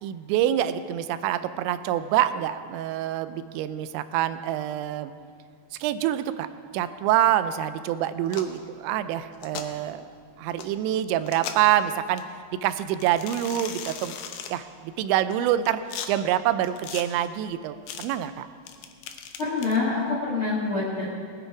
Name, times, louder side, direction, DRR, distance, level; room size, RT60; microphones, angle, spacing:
voice 1, 0.0-5.1 5.8-6.5 6.7-10.1 10.4-12.2 12.6-14.1 14.5-15.8 16.1-18.5, right 12 dB, 90° right, 12 dB, 2.9 m, -26 dB
sound 1, 8.3-8.6 9.3-9.7 10.6-10.7 11.2-11.7 12.2-12.3 13.0-14.5 15.3-16.1 16.6-17.0 17.9-18.1 18.7-19.8, left 8 dB, 80° left, 2.0 m, -37 dB
voice 2, 19.4-21.1, left 3 dB, 60° left, -5 dB, 1.4 m, -26 dB
19.0 x 10.0 x 4.9 m, 2.1 s
omnidirectional pair, 5.1 m